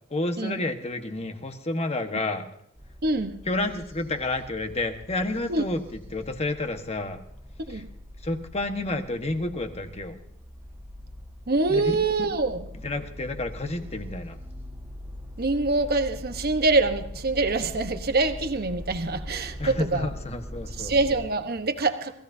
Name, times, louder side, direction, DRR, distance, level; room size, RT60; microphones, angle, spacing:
voice 1, 0.1-2.4 3.4-7.2 7.7-7.8 8.2-10.2 11.7-11.9 12.8-14.4 19.6-21.0, left 2 dB, 30° left, 6 dB, 1.4 m, -30 dB
sound 1, 2.8-21.3, left 1 dB, 10° right, 1.8 m, -42 dB
voice 2, 3.0-3.3 5.5-5.6 7.7-7.9 11.5-12.6 15.4-20.1 20.8-22.2, right 3 dB, 45° right, 8 dB, 1.1 m, -25 dB
27.0 x 16.0 x 2.7 m, 0.73 s
head